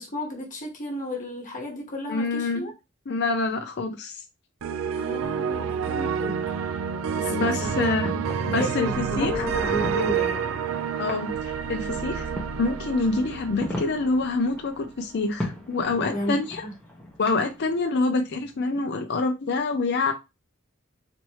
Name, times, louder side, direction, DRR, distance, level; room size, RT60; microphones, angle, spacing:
voice 1, 0.0-2.7 4.9-6.3 7.2-7.8 8.1-8.2 8.5-10.5 15.9-16.7, left 1 dB, 40° left, 1.4 m, -32 dB
voice 2, 2.1-2.7 3.1-4.2 7.3-8.1 8.5-8.9 9.2-9.5 11.0-12.3 12.6-16.6 17.2-20.1, left 3 dB, 55° left, 0.5 m, -26 dB
sound 1, 4.6-14.7, right 7 dB, 80° right, 0.5 m, -29 dB
sound 2, 7.1-18.6, left 1 dB, 5° left, 1.1 m, -40 dB
4.2 x 3.1 x 3.0 m
head